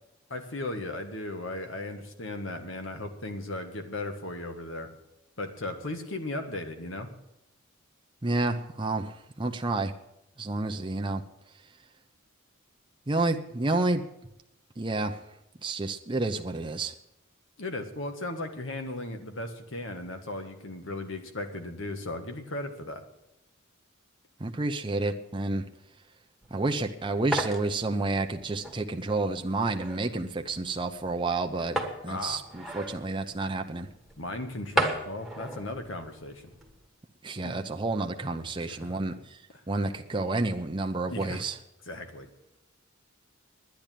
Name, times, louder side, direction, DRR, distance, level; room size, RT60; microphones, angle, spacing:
voice 1, 0.3-4.9 5.4-7.1 17.6-23.0 32.0-32.4 34.2-36.5 37.4-37.6 38.6-39.0 41.1-41.4 41.9-42.3, left 2 dB, 65° left, 6 dB, 1.7 m, -36 dB
voice 2, 8.2-9.1 9.4-9.9 10.4-11.2 13.1-14.0 14.8-15.2 15.6-16.9 24.4-25.6 26.5-31.8 32.0-33.9 37.2-39.1 39.7-41.5, right 2 dB, 25° right, 5 dB, 0.7 m, -29 dB
sound 1, 26.4-36.9, right 1 dB, ahead, 1.6 m, -36 dB
10.5 x 10.5 x 9.1 m, 0.84 s
head